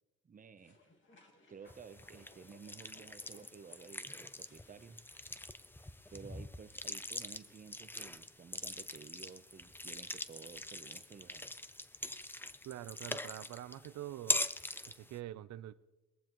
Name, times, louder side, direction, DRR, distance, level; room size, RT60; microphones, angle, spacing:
voice 1, 0.2-0.8 1.5-5.0 6.1-11.6, right 6 dB, 25° right, 0.8 m, -53 dB
sound 1, 0.6-6.5, left 2 dB, 40° left, 2.2 m, -66 dB
sound 2, 1.7-15.2, left 2 dB, 5° left, 0.5 m, -43 dB
voice 2, 12.7-14.4 14.9-15.7, right 13 dB, 65° right, 0.6 m, -45 dB
20.5 x 14.5 x 3.1 m
cardioid pair, 90°, 30 cm